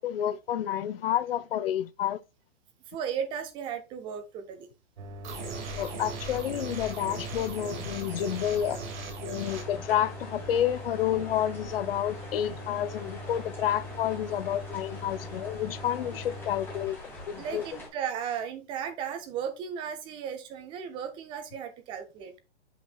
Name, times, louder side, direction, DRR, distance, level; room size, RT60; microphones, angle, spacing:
voice 1, 0.0-2.2 5.8-8.8 9.2-17.0 17.3-17.6, left 10 dB, 55° left, 0.7 m, -30 dB
voice 2, 2.9-4.7 17.4-22.3, right 8 dB, 15° right, 0.6 m, -35 dB
sound 1, 5.0-16.9, left 1 dB, 75° right, 1.6 m, -42 dB
sound 2, 5.2-9.6, right 4 dB, 40° right, 2.2 m, -39 dB
sound 3, 9.4-17.9, left 1 dB, 5° left, 2.3 m, -45 dB
7.4 x 5.8 x 2.4 m
hypercardioid pair, 150°, 34 cm